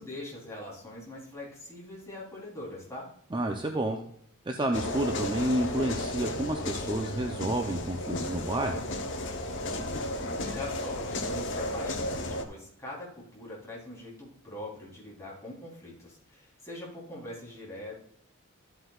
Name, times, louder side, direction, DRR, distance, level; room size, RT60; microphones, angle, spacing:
voice 1, 0.0-3.1 10.4-18.0, left 1 dB, 15° left, -5 dB, 3.5 m, -42 dB
voice 2, 3.3-4.0 4.4-8.8, right 1 dB, 20° right, 3 dB, 0.6 m, -30 dB
sound 1, 4.7-12.4, left 1 dB, 60° left, 1.0 m, -33 dB
13.0 x 7.9 x 2.4 m, 0.66 s
head